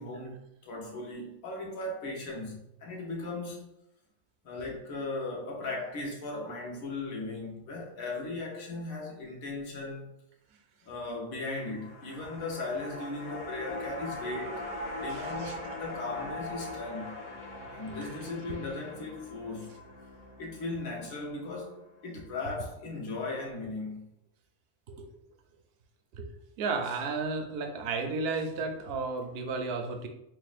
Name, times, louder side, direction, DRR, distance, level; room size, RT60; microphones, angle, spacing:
voice 1, 0.0-3.7 4.4-10.1 10.9-14.7 15.0-17.1 17.7-19.8 20.4-24.1, left 2 dB, 80° left, 1.3 m, -37 dB
sound 1, 11.6-22.0 22.3-22.4, left 1 dB, 45° left, 0.7 m, -41 dB
voice 2, 15.1-15.5 17.9-18.1 24.9-25.1 26.1-26.3 26.6-30.1, right 4 dB, 60° right, 0.7 m, -33 dB
6.0 x 2.1 x 2.4 m
omnidirectional pair, 1.4 m